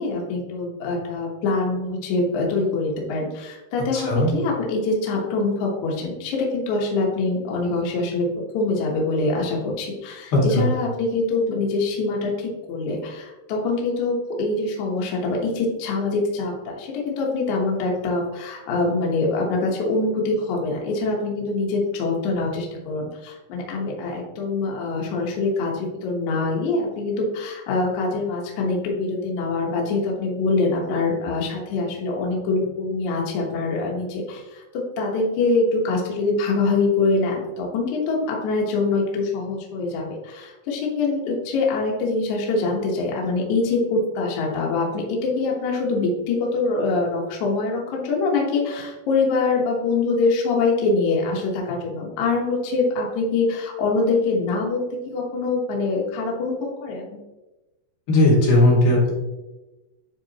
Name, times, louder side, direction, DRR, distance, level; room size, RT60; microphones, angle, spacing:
voice 1, 0.0-8.3 8.5-34.6 35.0-56.6 56.8-57.2, left 3 dB, 80° left, -2 dB, 1.7 m, -24 dB
voice 2, 3.9-4.3 10.3-10.7 58.1-59.1, left 1 dB, 65° left, -5 dB, 3.8 m, -17 dB
9.7 x 3.7 x 2.9 m, 1.1 s
omnidirectional pair, 5.3 m